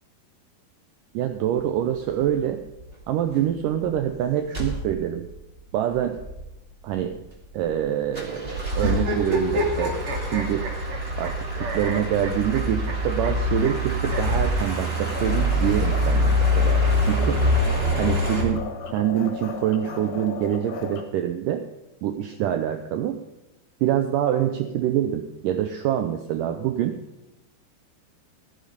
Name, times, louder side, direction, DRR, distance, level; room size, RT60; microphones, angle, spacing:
voice 1, 1.1-2.6 3.1-5.2 5.7-6.2 6.8-7.1 7.5-10.6 11.2-17.4 18.0-21.6 22.0-23.2 23.8-27.0, right 10 dB, 80° right, 7 dB, 1.9 m, -25 dB
sound 1, 2.1-2.3 2.8-3.0 3.3-3.4 3.7-4.1 4.5-5.3 5.7-5.8 5.9-6.4 6.9-7.8 8.1-18.4, left 1 dB, 20° right, 2.0 m, -25 dB
sound 2, 8.7-11.3 11.6-12.9 13.2-13.3 13.6-13.7 14.1-14.2 15.3-16.3, right 1 dB, 45° right, 2.3 m, -30 dB
sound 3, 15.1-21.0, left 6 dB, 70° left, 3.0 m, -36 dB
15.0 x 10.5 x 5.2 m, 0.95 s
omnidirectional pair, 4.5 m